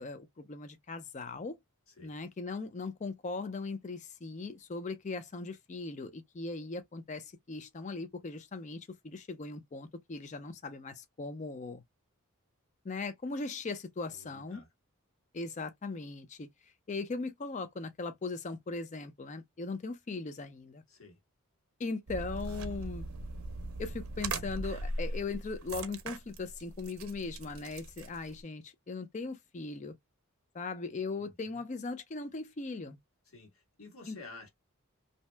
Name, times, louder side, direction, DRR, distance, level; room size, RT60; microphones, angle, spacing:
voice 1, 0.0-1.6 2.0-11.8 12.8-14.6 15.3-16.5 16.9-20.8 21.8-23.1 23.8-29.9 30.5-33.0 34.1-34.2, left 3 dB, 35° left, 0.4 m, -39 dB
voice 2, 14.1-14.7 20.9-21.2 31.2-31.6 33.3-34.5, left 3 dB, 75° left, 1.4 m, -51 dB
sound 1, 22.1-28.4, right 2 dB, 75° right, 0.6 m, -40 dB
2.7 x 2.0 x 3.2 m
head